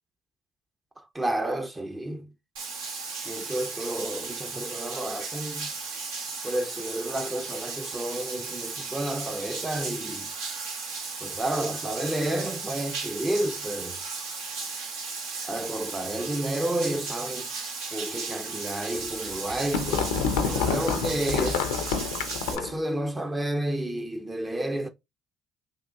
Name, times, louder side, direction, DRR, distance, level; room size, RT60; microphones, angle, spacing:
voice 1, 1.0-2.3 3.2-5.7 6.4-10.3 11.2-14.0 15.5-17.5 17.9-21.6 22.5-24.9, right 1 dB, 20° right, 0.5 m, -31 dB
Bathtub (filling or washing), 2.6-22.6, right 4 dB, 75° right, 0.8 m, -35 dB
sound 1, 19.1-22.8, left 6 dB, 80° left, 0.4 m, -28 dB
3.5 x 2.4 x 2.3 m
hypercardioid pair, 50°, 0 cm